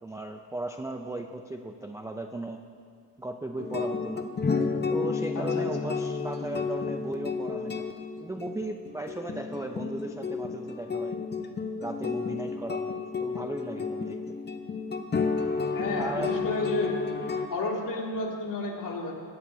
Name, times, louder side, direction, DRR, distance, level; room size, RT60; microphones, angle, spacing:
voice 1, 0.0-2.6 3.2-4.3 4.9-7.9 8.2-11.2 11.8-14.4 16.0-16.4, right 2 dB, 5° right, 4 dB, 0.4 m, -36 dB
sound 1, 3.6-17.5, left 5 dB, 20° left, 0.8 m, -31 dB
voice 2, 5.4-5.7 15.7-17.0 17.5-19.2, left 3 dB, 45° left, -1 dB, 2.4 m, -31 dB
20.5 x 16.0 x 2.7 m, 2.2 s
cardioid pair, 130°, 46 cm